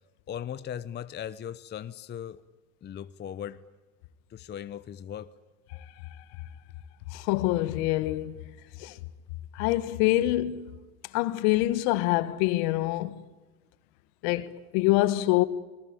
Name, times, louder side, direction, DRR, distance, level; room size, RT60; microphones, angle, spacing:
voice 1, 0.3-2.4 2.8-3.6 4.3-5.3, left 9 dB, 25° left, 0.7 m, -38 dB
voice 2, 7.1-8.4 8.8-9.0 9.5-10.8 11.1-13.2 14.2-15.4, left 16 dB, 60° left, 1.5 m, -25 dB
27.0 x 20.0 x 8.9 m
hypercardioid pair, 100°, 44 cm